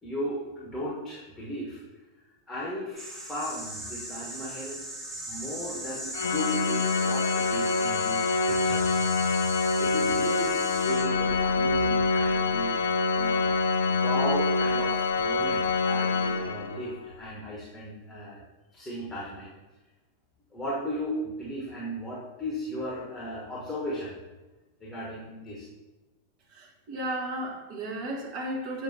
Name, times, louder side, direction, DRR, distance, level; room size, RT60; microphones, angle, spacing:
voice 1, 0.0-1.8 2.5-4.8 5.3-9.0 9.8-12.8 13.1-13.6 13.8-18.4 18.7-19.5 20.5-24.1 24.8-25.6, left 1 dB, 10° left, -5 dB, 1.2 m, -36 dB
sound 1, 3.0-13.5 14.2-15.6, right 1 dB, 15° right, 1.9 m, -39 dB
Organ, 6.1-17.0, left 3 dB, 60° left, 0.4 m, -26 dB
voice 2, 26.5-28.8, right 1 dB, 45° right, -1 dB, 1.5 m, -34 dB
7.3 x 4.7 x 2.8 m, 1.1 s
figure-of-eight pair, 90°, 0 cm